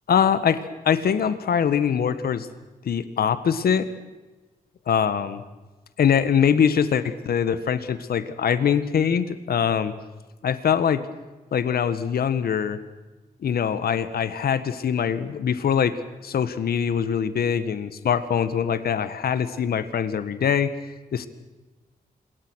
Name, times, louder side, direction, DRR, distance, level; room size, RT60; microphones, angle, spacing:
voice 1, 0.1-2.5 2.8-3.9 4.9-5.4 6.0-9.9 10.4-11.0 11.5-12.8 13.4-16.0 16.2-20.7 21.1-21.3, left 7 dB, 80° left, 12 dB, 1.7 m, -23 dB
26.5 x 22.5 x 6.4 m, 1.2 s
wide cardioid pair, 140°, 16 cm